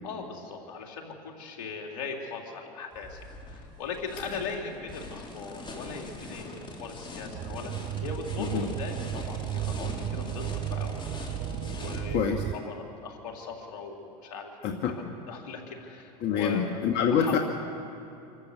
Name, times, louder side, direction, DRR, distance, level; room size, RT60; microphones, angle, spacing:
voice 1, 0.0-3.2 3.5-16.7 17.1-17.4, left 5 dB, 75° left, 1 dB, 3.5 m, -39 dB
sound 1, 2.9-12.0, left 2 dB, 25° left, 3.7 m, -42 dB
sound 2, 7.3-12.5, right 13 dB, 40° right, 0.5 m, -34 dB
voice 2, 12.1-12.4 14.6-14.9 16.2-17.4, left 7 dB, 55° left, 3 dB, 1.7 m, -26 dB
26.5 x 14.0 x 8.2 m, 2.8 s
hypercardioid pair, 95°, 21 cm